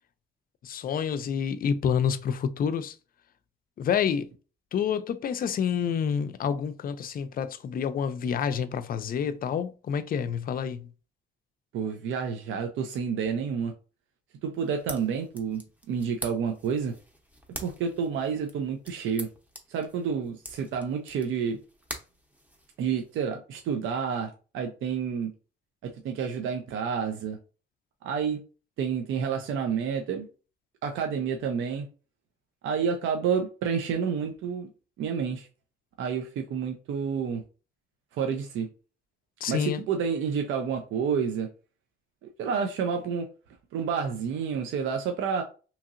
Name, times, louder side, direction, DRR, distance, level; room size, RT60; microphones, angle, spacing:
voice 1, 0.6-2.9 3.8-4.3 4.7-10.9 39.4-39.8, left 7 dB, 45° left, 0.4 m, -28 dB
voice 2, 11.7-13.7 14.4-15.6 15.9-16.9 17.6-19.3 19.7-21.6 22.8-25.3 25.8-27.4 28.0-28.4 28.8-30.3 30.8-31.9 32.6-34.7 35.0-35.5 36.0-37.4 38.1-38.7 39.5-41.5 42.2-43.3 43.7-45.4, right 6 dB, 80° right, 0.5 m, -29 dB
sound 1, 14.5-23.1, equal, 10° right, 0.7 m, -45 dB
2.8 x 2.7 x 2.5 m
cardioid pair, 90°, 20 cm